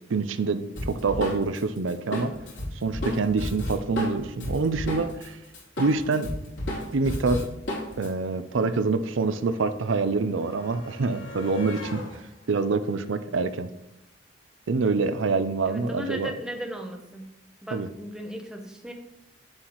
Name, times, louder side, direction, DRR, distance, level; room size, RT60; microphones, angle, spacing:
voice 1, 0.0-2.3 2.8-5.4 5.8-6.3 6.9-7.5 8.0-12.0 12.5-13.7 14.7-16.3 17.7-17.9, right 4 dB, 85° right, 11 dB, 0.5 m, -26 dB
Drum kit, 0.8-5.3 5.5-8.1, left 1 dB, 70° left, 3.1 m, -32 dB
sound 1, 8.3-14.1 15.3-15.4 15.7-15.8, left 1 dB, 90° left, 1.5 m, -44 dB
voice 2, 15.7-17.3 17.6-18.9, equal, 5° right, 2 dB, 0.8 m, -36 dB
8.9 x 7.5 x 3.1 m, 0.86 s
head